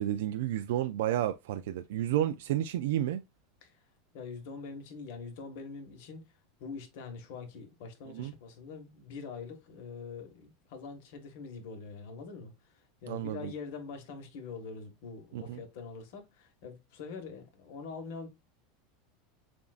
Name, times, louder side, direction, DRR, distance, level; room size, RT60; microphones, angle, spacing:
voice 1, 0.0-3.2 8.1-8.3 13.1-13.5 15.3-15.6, right 12 dB, 75° right, 0.4 m, -31 dB
voice 2, 4.1-6.2 6.6-18.3, left 5 dB, 60° left, 1.4 m, -44 dB
6.9 x 2.6 x 2.4 m
supercardioid pair, 160°, 0 cm